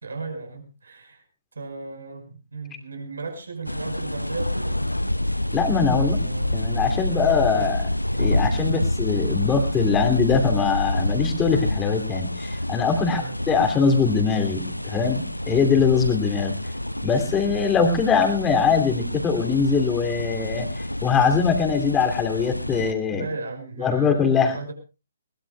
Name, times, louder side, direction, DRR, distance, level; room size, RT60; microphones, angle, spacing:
voice 1, 0.0-1.2 1.6-4.8 6.0-6.6 7.5-7.7 8.6-8.9 13.0-13.4 23.1-24.7, right 3 dB, 65° right, 5 dB, 5.3 m, -36 dB
sound 1, 3.7-22.9, left 1 dB, 90° left, 0.6 m, -27 dB
voice 2, 5.5-6.2 6.5-7.8 8.2-16.5 17.0-20.7 21.0-23.2 23.8-24.6, left 6 dB, 15° left, 5 dB, 2.7 m, -22 dB
21.5 x 20.0 x 2.3 m, 0.31 s
figure-of-eight pair, 130°, 0 cm